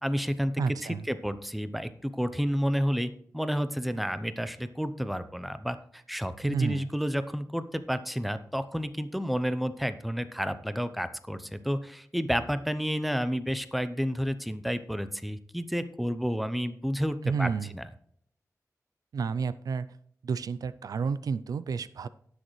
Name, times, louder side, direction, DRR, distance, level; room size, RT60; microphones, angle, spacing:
voice 1, 0.0-17.9, equal, ahead, 11 dB, 0.6 m, -30 dB
voice 2, 0.6-1.1 6.4-6.8 17.2-17.7 19.1-19.9 20.2-22.1, right 5 dB, 85° right, 14 dB, 0.4 m, -30 dB
18.0 x 6.5 x 3.1 m, 0.65 s
wide cardioid pair, 120°, 6 cm